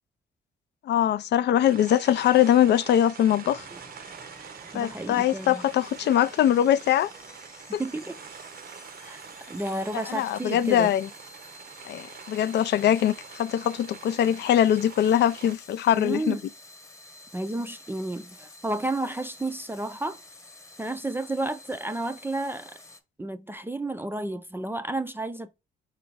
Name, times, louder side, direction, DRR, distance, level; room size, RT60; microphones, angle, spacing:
voice 1, 0.9-3.6 4.7-7.1 7.7-7.8 10.1-11.1 11.9-13.1 13.4-16.4, left 11 dB, 60° left, 0.4 m, -22 dB
sound 1, 1.6-15.6, right 7 dB, 50° right, 0.7 m, -45 dB
sound 2, 3.4-23.0, left 2 dB, 15° left, 1.0 m, -50 dB
voice 2, 4.7-5.6 7.8-8.2 9.0-9.2 9.5-11.0 15.9-16.4 17.3-20.2 20.8-22.7 23.2-25.5, right 2 dB, 10° right, 0.4 m, -31 dB
4.3 x 2.5 x 4.6 m
cardioid pair, 90°, 20 cm